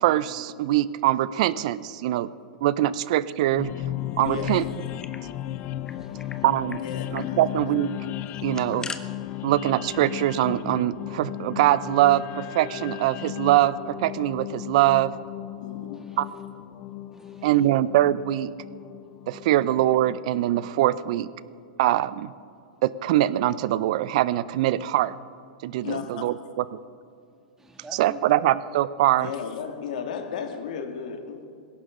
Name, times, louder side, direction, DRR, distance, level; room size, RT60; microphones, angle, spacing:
voice 1, 0.0-2.3 2.6-3.7 4.2-4.6 6.4-6.8 7.1-7.9 8.4-8.9 9.4-15.1 16.2-16.3 17.4-18.5 19.3-21.3 21.8-22.3 22.8-25.1 25.6-26.6 27.9-29.3, right 14 dB, 60° right, 18 dB, 0.6 m, -23 dB
sound 1, 3.6-20.7, left 13 dB, 40° left, 0.5 m, -36 dB
voice 2, 4.2-4.6 6.7-7.5 8.4-8.5 15.6-16.0 25.8-26.2 29.2-31.5, left 7 dB, 70° left, 6 dB, 1.9 m, -34 dB
sound 2, 4.2-5.2 5.5-5.6 5.9-6.4 6.7-6.8 7.1-7.3 8.3-9.0, left 4 dB, 15° left, 0.9 m, -40 dB
voice 3, 5.9-6.4 15.9-16.2 17.1-17.5 27.6-28.5, right 3 dB, 10° right, 3 dB, 2.3 m, -46 dB
20.0 x 17.5 x 3.8 m, 2.4 s
hypercardioid pair, 110°, 4 cm